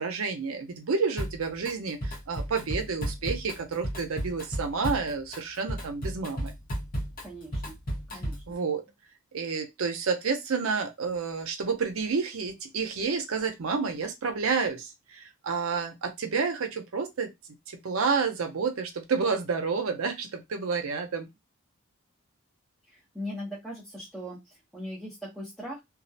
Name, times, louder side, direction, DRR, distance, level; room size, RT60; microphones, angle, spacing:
voice 1, 0.0-6.5 8.5-8.8 9.3-17.3 17.8-21.3, right 5 dB, 70° right, 6 dB, 0.6 m, -30 dB
Drum kit, 1.2-1.7 2.0-8.5, equal, 40° left, 0.8 m, -34 dB
voice 2, 7.2-7.8 8.1-8.4 22.9-25.8, equal, ahead, -7 dB, 0.6 m, -39 dB
2.3 x 2.1 x 2.6 m, 0.19 s
head